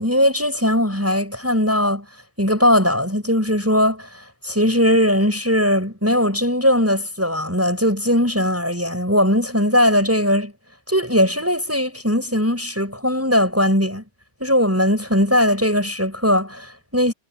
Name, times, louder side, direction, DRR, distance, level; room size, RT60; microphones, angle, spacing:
voice 1, 0.0-2.1 2.4-10.5 10.9-14.0 14.4-17.1, equal, 10° right, 6.7 m, -19 dB
omnidirectional pair, 1.9 m